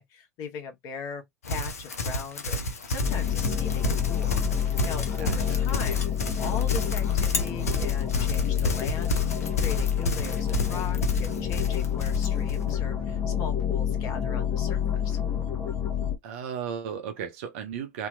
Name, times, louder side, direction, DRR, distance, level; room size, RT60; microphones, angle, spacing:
voice 1, 0.0-4.3 4.6-6.0 6.4-15.2, left 5 dB, 50° left, 1.3 m, -40 dB
Livestock farm animals working animals, 1.4-12.6, left 1 dB, 85° left, 0.7 m, -31 dB
sound 1, 3.0-16.2, left 9 dB, 35° left, 1.0 m, -27 dB
voice 2, 5.2-5.7 16.2-18.1, right 7 dB, 60° right, 0.7 m, -35 dB
2.8 x 2.8 x 2.5 m
figure-of-eight pair, 80°, 8 cm